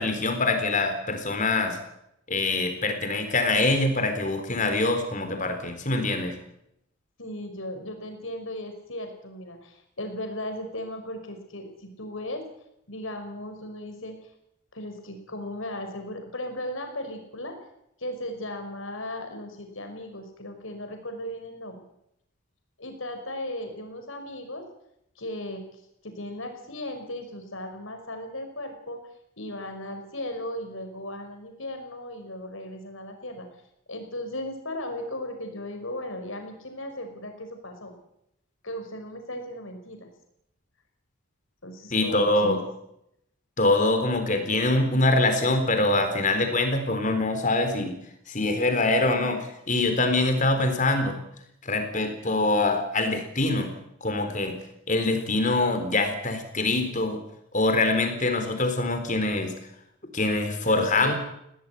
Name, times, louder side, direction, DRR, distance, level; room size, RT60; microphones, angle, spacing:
voice 1, 0.0-1.8 2.3-6.4 41.9-42.6 43.6-47.9 48.3-51.2 51.6-53.7 54.0-54.6 54.9-57.2 57.5-59.5 60.1-61.1, left 2 dB, 35° left, 7 dB, 3.9 m, -24 dB
voice 2, 7.2-12.4 12.9-14.2 14.7-17.6 18.0-21.8 22.8-24.6 25.2-25.6 26.0-29.0 29.4-33.5 33.9-38.0 38.6-40.1 41.6-42.6 60.7-61.1, left 1 dB, 65° left, 5 dB, 5.3 m, -36 dB
18.5 x 18.5 x 9.3 m, 0.79 s
head